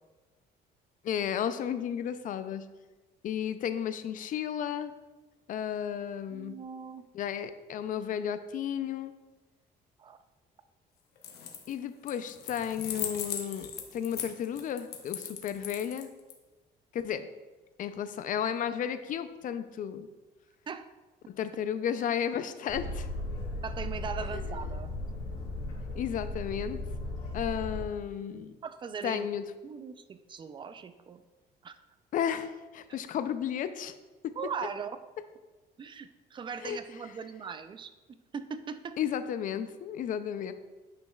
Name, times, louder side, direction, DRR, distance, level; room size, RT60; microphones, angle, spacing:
voice 1, 1.0-2.7 3.2-4.9 5.5-6.5 7.1-9.1 11.7-16.1 16.9-17.3 17.8-20.1 21.3-23.1 24.3-24.6 26.0-26.8 27.3-28.5 29.0-29.4 32.1-33.9 34.2-34.4 36.6-36.8 39.0-40.5, left 9 dB, 50° left, 11 dB, 0.5 m, -33 dB
voice 2, 6.3-7.1 10.0-10.2 20.7-20.9 23.6-24.9 28.6-29.3 29.6-31.2 31.6-31.7 34.4-35.0 35.8-37.9 38.3-39.0, right 6 dB, 30° right, 11 dB, 0.4 m, -39 dB
sound 1, 11.2-11.7 12.1-16.3, left 8 dB, 70° left, 0.9 m, -38 dB
Boat Water vehicle, 22.7-27.9, left 1 dB, 90° left, 1.4 m, -36 dB
9.1 x 5.3 x 2.3 m, 1.2 s
cardioid pair, 110°, 17 cm